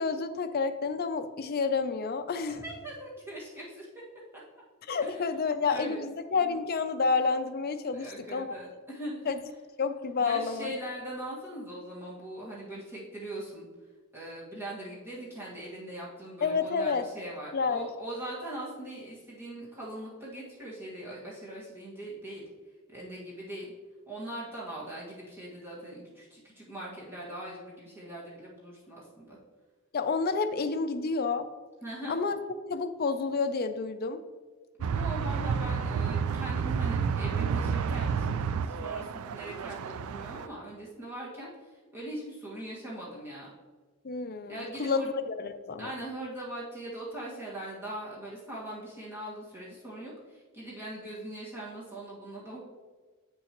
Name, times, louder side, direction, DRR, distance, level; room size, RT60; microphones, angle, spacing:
voice 1, 0.0-2.6 4.9-8.5 9.3-9.4 9.8-10.7 16.4-17.0 17.5-17.9 29.9-31.5 32.1-32.4 32.7-34.2 44.0-45.9, left 4 dB, 45° left, 8 dB, 0.5 m, -29 dB
voice 2, 2.6-3.9 5.0-5.3 5.6-6.0 7.9-9.3 10.2-13.7 14.1-22.4 22.9-23.7 24.1-29.4 31.8-32.1 34.9-43.5 44.5-45.1 45.8-52.6, right 1 dB, 10° right, -7 dB, 1.7 m, -41 dB
sound 1, 34.8-40.5, right 6 dB, 75° right, 0.3 m, -30 dB
7.8 x 6.7 x 3.0 m, 1.4 s
head